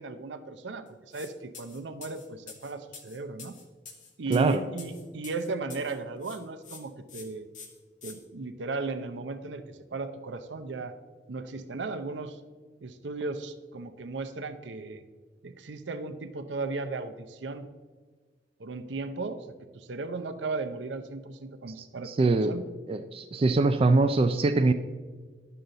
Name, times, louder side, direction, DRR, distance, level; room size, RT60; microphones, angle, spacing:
voice 1, 0.0-3.6 4.2-7.5 8.0-11.0 11.3-12.4 12.8-15.0 15.4-17.7 18.6-19.5 19.7-22.6, right 3 dB, 75° right, 9 dB, 0.6 m, -36 dB
sound 1, 1.1-1.3 1.5-6.0 6.2-6.8 7.1-7.2 7.5-8.1, left 5 dB, 45° left, 1.2 m, -46 dB
voice 2, 4.3-4.6 21.8-22.5 22.9-24.7, right 3 dB, 30° right, 9 dB, 0.3 m, -23 dB
10.5 x 6.8 x 3.9 m, 1.4 s
head